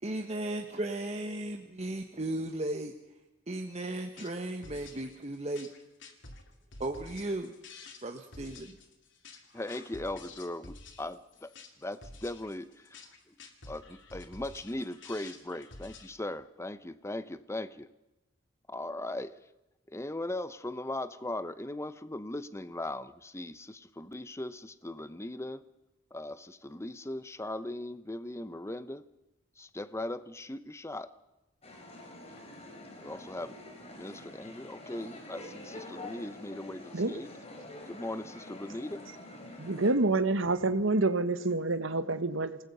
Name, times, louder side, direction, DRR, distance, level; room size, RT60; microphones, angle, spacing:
voice 1, 0.0-2.9 3.5-5.7 6.8-7.5 8.0-8.8, right 1 dB, 35° right, 4 dB, 1.3 m, -35 dB
sound 1, 4.0-16.1, left 3 dB, 65° left, 2.9 m, -50 dB
voice 2, 9.5-11.5 11.8-13.4 13.7-17.9 18.7-19.5 19.9-25.6 26.1-29.0 29.6-31.1 33.0-33.6 33.9-37.3 37.9-39.1, left 1 dB, 15° left, 13 dB, 0.8 m, -39 dB
sound 2, 31.6-39.9, left 2 dB, 35° left, 3.7 m, -47 dB
voice 3, 39.6-42.6, right 2 dB, 85° right, 12 dB, 1.4 m, -27 dB
27.5 x 19.5 x 5.5 m, 0.96 s
head